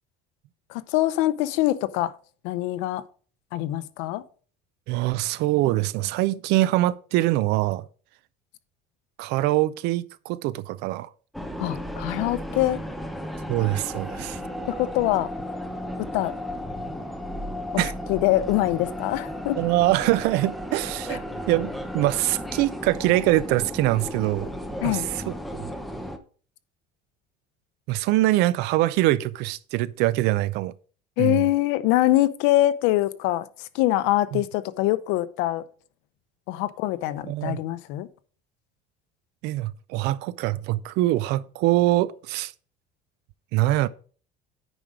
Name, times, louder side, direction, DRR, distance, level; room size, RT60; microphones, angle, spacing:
voice 1, 0.7-2.1 2.4-3.0 3.5-4.2 11.6-12.8 14.6-15.3 16.0-16.4 17.7-17.8 18.1-19.6 24.8-25.1 31.2-33.4 33.7-35.6 36.5-38.1, left 15 dB, 80° left, 0.7 m, -24 dB
voice 2, 4.9-7.8 9.2-11.1 13.5-14.4 17.8-17.9 19.6-21.2 21.5-24.5 24.8-25.7 27.9-30.7 31.2-31.5 34.3-34.4 37.2-37.6 39.4-42.5 43.5-43.9, right 16 dB, 70° right, 0.5 m, -24 dB
sound 1, 11.3-26.2, equal, ahead, 0.7 m, -34 dB
9.1 x 5.3 x 4.8 m
cardioid pair, 155°, 18 cm